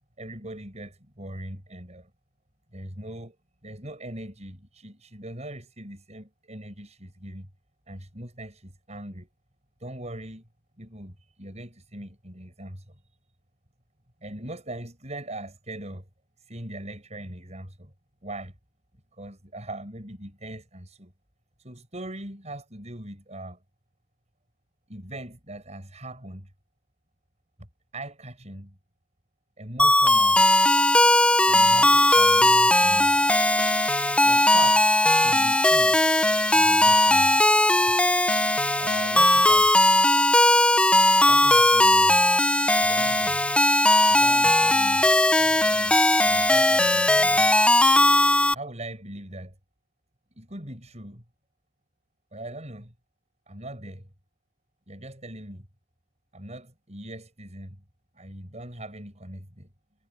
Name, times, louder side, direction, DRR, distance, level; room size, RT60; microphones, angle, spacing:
voice 1, 0.2-2.1 2.7-3.4 3.6-7.5 7.9-9.3 9.8-10.4 10.8-13.0 14.2-16.1 16.5-17.9 18.2-18.5 19.1-21.1 21.6-23.6 24.9-26.5 27.9-28.8 29.6-30.5 31.5-33.2 34.2-34.8 35.2-36.0 36.5-37.4 38.8-39.7 41.2-42.3 42.8-43.5 44.1-47.5 48.5-49.6 50.3-51.2 52.3-52.9 53.5-54.1 54.9-55.7 56.3-57.8 58.1-59.7, right 1 dB, 35° right, 7.1 m, -40 dB
sound 1, 29.8-48.5, left 1 dB, 5° left, 0.6 m, -19 dB
head